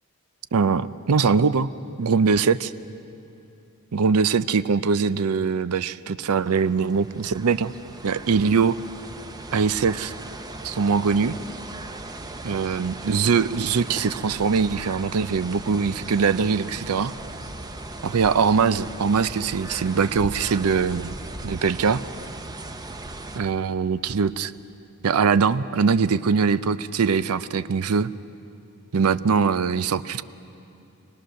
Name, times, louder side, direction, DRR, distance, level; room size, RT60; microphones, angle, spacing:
voice 1, 0.5-1.7 2.0-2.7 3.9-7.7 8.0-8.8 9.5-10.1 10.6-11.3 12.4-17.1 18.0-21.1 21.4-22.0 23.3-24.5 25.0-28.1 28.9-30.2, right 5 dB, 80° right, 14 dB, 0.5 m, -22 dB
sound 1, 6.4-23.4, right 2 dB, 20° right, 0.7 m, -38 dB
26.0 x 19.0 x 6.5 m, 2.7 s
head